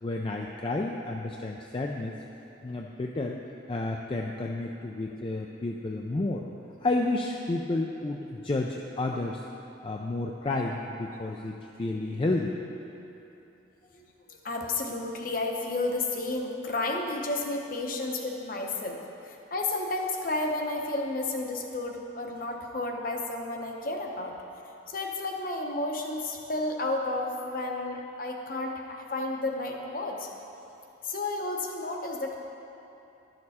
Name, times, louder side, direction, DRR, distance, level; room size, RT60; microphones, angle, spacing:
voice 1, 0.0-2.1 2.6-3.4 3.7-6.5 6.8-9.4 9.8-12.6, left 2 dB, 25° left, 1 dB, 0.3 m, -31 dB
voice 2, 14.3-24.3 24.9-30.3 31.0-32.4, left 2 dB, 45° left, 1 dB, 0.8 m, -32 dB
12.0 x 6.6 x 4.2 m, 2.9 s
head